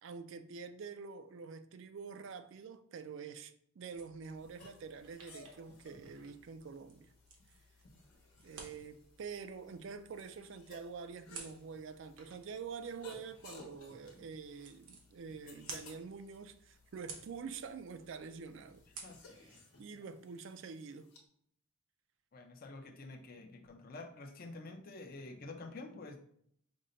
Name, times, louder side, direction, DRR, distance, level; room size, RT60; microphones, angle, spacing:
voice 1, 0.0-7.1 8.4-18.8 19.4-19.5 19.8-21.1, right 5 dB, 55° right, 0.3 m, -47 dB
sound 1, 3.9-19.3, right 4 dB, 85° right, 0.9 m, -55 dB
sound 2, 4.4-21.2, left 3 dB, 85° left, 1.1 m, -59 dB
voice 2, 22.3-26.2, left 2 dB, 40° left, 0.5 m, -48 dB
5.2 x 2.1 x 3.8 m
head